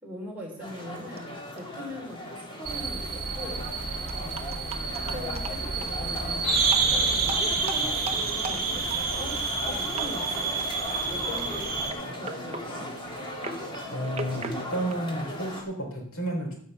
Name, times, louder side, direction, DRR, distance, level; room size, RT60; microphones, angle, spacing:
voice 1, 0.0-1.3 1.5-3.7 4.2-4.5 4.8-6.5 7.1-10.7 11.1-11.8 12.1-12.9, left 1 dB, 5° right, -3 dB, 3.9 m, -41 dB
sound 1, 0.6-15.6, equal, 20° left, 1.9 m, -38 dB
sound 2, 1.1-1.2 1.6-1.7 2.6-2.7 3.0-3.1 4.1-6.0 6.6-6.9 7.2-9.7 9.9-10.1 10.4-10.7 11.0-11.4 11.8-15.7, right 3 dB, 30° right, 0.9 m, -39 dB
sound 3, 2.7-11.9, right 4 dB, 45° right, 2.3 m, -29 dB
voice 2, 13.9-16.6, right 1 dB, 75° left, 2 dB, 3.5 m, -31 dB
14.5 x 5.5 x 7.6 m, 0.64 s
head